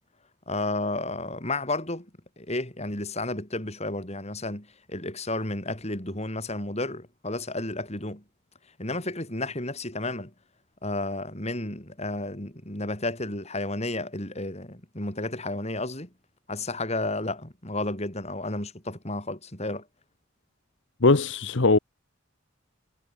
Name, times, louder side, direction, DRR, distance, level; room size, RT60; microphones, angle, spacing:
voice 1, 0.5-2.1 2.4-8.2 8.8-10.3 10.8-16.1 16.5-19.9, left 2 dB, 30° left, 5.8 m, -32 dB
voice 2, 21.0-21.8, left 3 dB, 60° left, 1.0 m, -20 dB
head